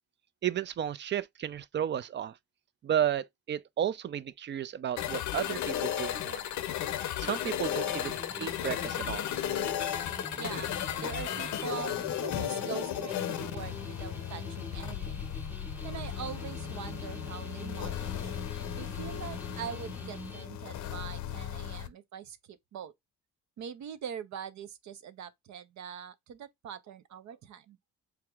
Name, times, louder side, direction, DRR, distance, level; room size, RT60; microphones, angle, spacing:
voice 1, 0.4-2.3 2.8-6.4 7.2-9.3, right 10 dB, 40° right, 0.4 m, -33 dB
sound 1, 5.0-21.9, left 11 dB, 70° left, 0.6 m, -35 dB
sound 2, 7.7-20.4, right 1 dB, 5° right, 0.7 m, -45 dB
voice 2, 10.4-15.3 15.8-18.3 18.8-22.9 23.6-27.8, right 8 dB, 65° right, 0.7 m, -43 dB
4.6 x 3.5 x 2.3 m
cardioid pair, 90°, 30 cm